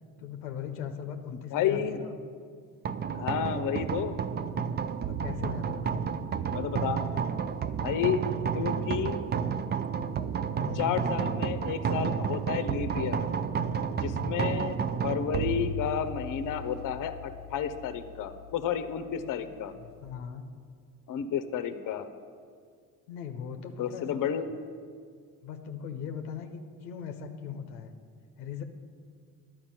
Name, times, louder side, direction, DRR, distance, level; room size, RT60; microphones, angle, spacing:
voice 1, 0.2-2.1 5.1-6.1 10.6-11.1 13.9-14.5 18.9-19.5 19.8-20.4 23.1-24.2 25.4-28.0 28.4-28.6, left 7 dB, 80° left, 6 dB, 0.7 m, -39 dB
voice 2, 1.5-2.0 3.1-4.2 6.5-7.1 7.8-8.2 8.5-9.2 10.7-13.3 14.0-19.7 21.1-22.1 23.8-24.5, left 8 dB, 45° left, 11 dB, 0.7 m, -31 dB
sound 1, 2.8-20.1, right 6 dB, 25° right, 0.4 m, -32 dB
10.5 x 4.8 x 7.4 m, 2.1 s
hypercardioid pair, 55°, 44 cm